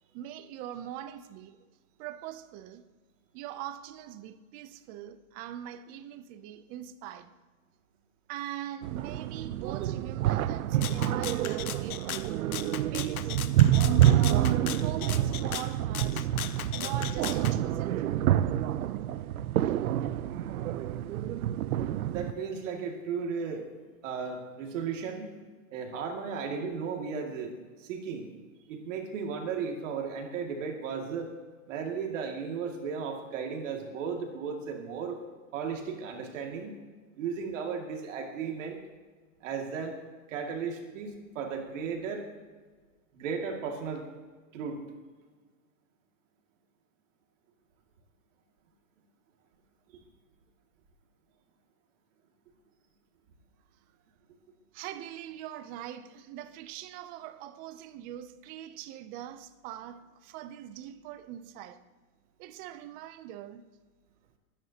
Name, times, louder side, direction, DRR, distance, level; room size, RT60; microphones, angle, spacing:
voice 1, 0.1-1.7 2.0-2.9 3.3-7.3 8.3-12.1 12.9-13.3 14.1-16.3 16.7-18.3 54.7-61.8 62.4-63.7, right 11 dB, 20° right, 0.4 m, -42 dB
sound 1, 8.8-22.3, right 12 dB, 85° right, 0.7 m, -27 dB
Rattle (instrument), 10.8-17.6, left 11 dB, 90° left, 0.8 m, -38 dB
voice 2, 22.1-23.7 24.0-25.3 25.7-27.5 27.8-28.3 28.7-31.3 31.7-35.2 35.5-36.7 37.2-38.8 39.4-40.0 40.3-42.3 43.1-44.0 44.5-44.8 49.9-50.0, right 6 dB, 60° right, 2.3 m, -35 dB
23.5 x 10.0 x 2.9 m
hypercardioid pair, 140°, 42 cm